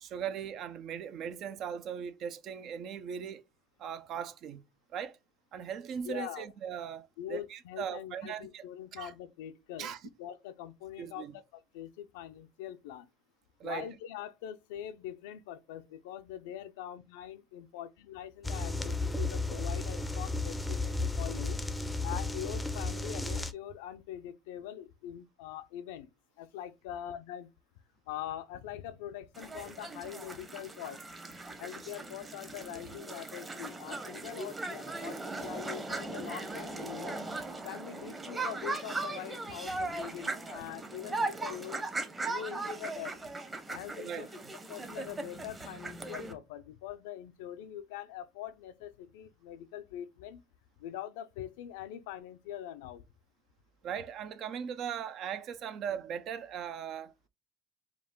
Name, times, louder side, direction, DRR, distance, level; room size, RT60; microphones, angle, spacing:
voice 1, 0.0-3.4 3.8-4.6 4.9-5.2 5.5-8.6 8.9-9.1 9.8-10.0 11.0-11.3 13.6-13.9 44.0-44.3 53.8-57.3, right 8 dB, 55° right, 0.7 m, -39 dB
voice 2, 6.0-6.5 7.2-9.9 10.2-13.1 13.6-21.6 22.0-26.1 26.4-27.5 28.1-31.0 31.6-37.2 37.6-41.8 42.3-43.2 43.7-44.3 44.7-50.4 50.8-53.0, left 11 dB, 85° left, 0.5 m, -43 dB
sound 1, 18.4-23.5, left 2 dB, 10° left, 0.6 m, -33 dB
sound 2, 29.4-46.3, right 3 dB, 20° right, 1.0 m, -39 dB
4.6 x 2.4 x 3.5 m
supercardioid pair, 95°, 0 cm